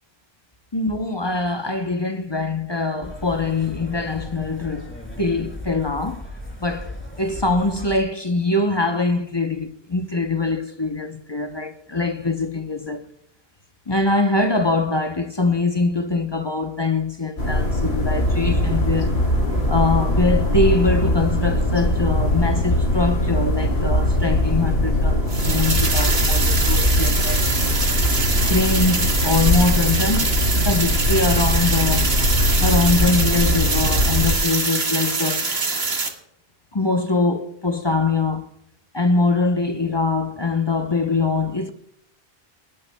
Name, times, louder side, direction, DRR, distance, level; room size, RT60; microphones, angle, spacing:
voice 1, 0.7-6.3 6.6-13.0 13.9-19.1 19.7-27.4 28.5-32.1 32.6-35.5 36.7-38.5 38.9-41.7, left 3 dB, 25° left, 0.8 m, -23 dB
sound 1, 3.0-8.0, left 1 dB, 10° left, 4.0 m, -37 dB
sound 2, 17.4-34.3, left 1 dB, 85° left, 3.1 m, -21 dB
sound 3, 25.3-36.1, right 3 dB, 75° right, 1.9 m, -24 dB
29.0 x 12.0 x 2.2 m
omnidirectional pair, 1.0 m